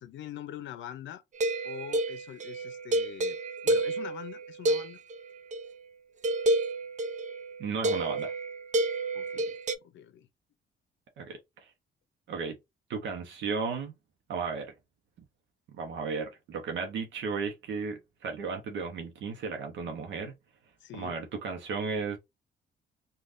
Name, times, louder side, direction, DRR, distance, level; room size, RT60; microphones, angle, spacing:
voice 1, 0.0-1.2 1.6-3.4 3.6-5.0 9.1-9.6 9.8-10.3 20.8-21.2, left 10 dB, 70° left, 0.6 m, -43 dB
sound 1, 1.3-5.7 6.2-9.8, right 2 dB, 40° right, 0.5 m, -30 dB
voice 2, 7.6-8.3 11.2-11.7 12.3-12.6 12.9-13.9 14.3-14.7 15.7-20.4 21.0-22.2, right 5 dB, 70° right, 0.8 m, -34 dB
3.3 x 2.4 x 2.5 m
cardioid pair, 90°, 20 cm